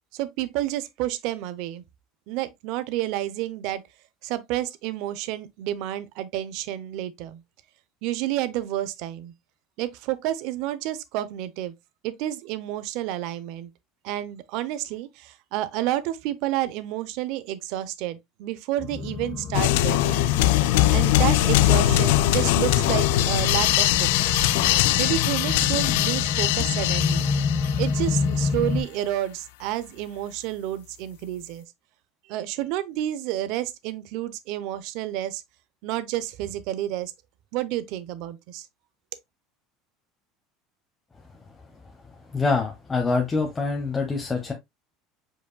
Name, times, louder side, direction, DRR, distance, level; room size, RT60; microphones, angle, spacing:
voice 1, 0.1-1.8 2.3-3.8 4.2-7.4 8.0-9.3 9.8-11.7 12.0-13.7 14.0-20.3 20.9-24.4 25.0-27.3 27.8-31.6 32.3-35.4 35.8-37.1 37.5-38.7, right 13 dB, 65° right, 0.6 m, -30 dB
sound 1, 18.8-28.8, left 5 dB, 35° left, 1.6 m, -29 dB
sound 2, 19.5-28.0, left 15 dB, 80° left, 0.3 m, -21 dB
voice 2, 42.3-44.5, left 4 dB, 20° left, 0.9 m, -25 dB
5.1 x 4.7 x 2.2 m
supercardioid pair, 120°, 0 cm